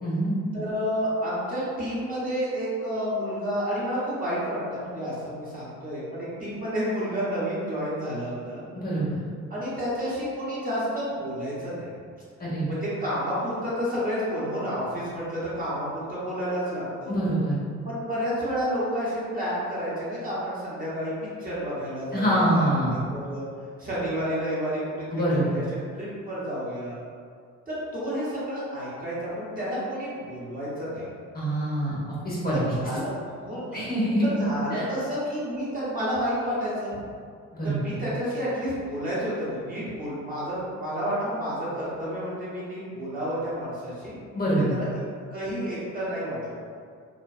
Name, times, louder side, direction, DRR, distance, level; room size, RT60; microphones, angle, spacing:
voice 1, 0.0-0.3 8.7-9.2 12.4-12.7 17.1-17.6 22.1-23.2 25.1-25.6 31.3-32.0 32.2-32.6 33.7-34.4 34.7-34.8 37.5-37.8 44.3-44.8, right 1 dB, 30° left, -7 dB, 0.8 m, -25 dB
voice 2, 0.5-8.7 9.5-11.9 12.6-17.1 17.8-23.4 23.8-25.2 25.5-25.6 26.0-27.0 27.7-31.1 32.5-33.8 34.2-37.0 37.6-44.2 44.5-45.0 45.3-46.6, equal, 30° right, -9 dB, 0.9 m, -30 dB
2.5 x 2.2 x 2.4 m, 2.1 s
cardioid pair, 90°, 30 cm